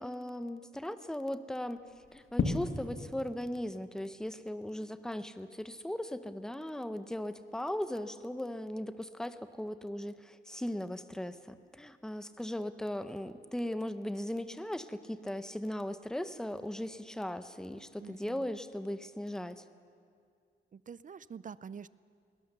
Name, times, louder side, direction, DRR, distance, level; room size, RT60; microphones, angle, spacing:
voice 1, 0.0-1.8 2.1-19.6, left 1 dB, 5° left, 11 dB, 0.7 m, -38 dB
sound 1, 1.8-18.9, left 4 dB, 70° left, 1.6 m, -45 dB
voice 2, 18.0-18.5 20.7-21.9, right 6 dB, 40° right, 18 dB, 0.5 m, -46 dB
21.0 x 19.0 x 6.8 m, 2.3 s
wide cardioid pair, 130°, 21 cm